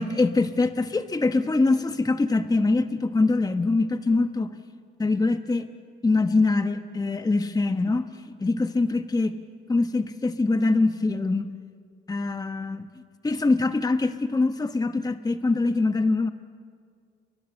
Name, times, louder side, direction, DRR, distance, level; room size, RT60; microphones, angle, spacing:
voice 1, 0.0-4.5 5.0-5.7 6.0-8.1 8.4-9.4 9.7-11.5 12.1-12.9 13.2-16.3, left 3 dB, 20° left, 9 dB, 1.0 m, -23 dB
30.0 x 23.0 x 7.1 m, 2.1 s
cardioid pair, 90°, 20 cm